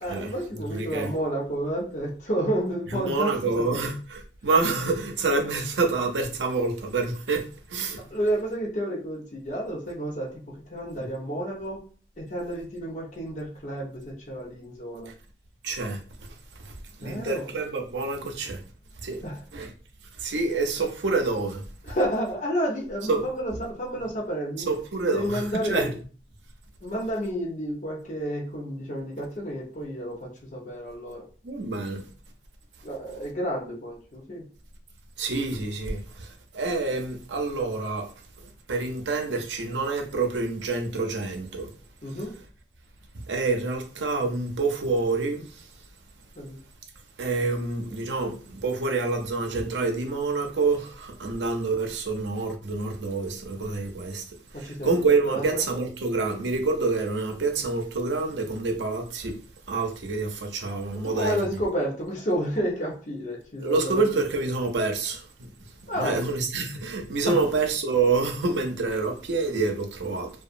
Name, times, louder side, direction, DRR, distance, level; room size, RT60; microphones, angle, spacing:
voice 1, 0.0-3.3 3.7-3.9 8.1-11.8 12.2-15.1 17.0-17.5 19.2-19.4 21.8-24.7 25.0-25.9 26.8-31.2 32.8-34.4 42.0-42.3 46.4-46.6 54.5-55.6 61.1-64.0 65.9-66.2 67.3-67.4, equal, 45° left, 0.7 m, -30 dB
voice 2, 0.7-1.1 2.9-8.0 10.9-11.1 15.1-15.2 15.6-16.3 16.6-18.6 19.0-19.2 19.5-19.7 20.1-22.0 23.1-23.2 23.9-24.0 24.7-25.9 31.4-32.0 35.2-38.1 38.4-41.7 42.1-42.2 43.3-45.7 47.2-59.4 59.7-61.4 63.6-65.5 65.8-70.3, right 3 dB, 85° right, 0.6 m, -27 dB
2.8 x 2.3 x 2.5 m
head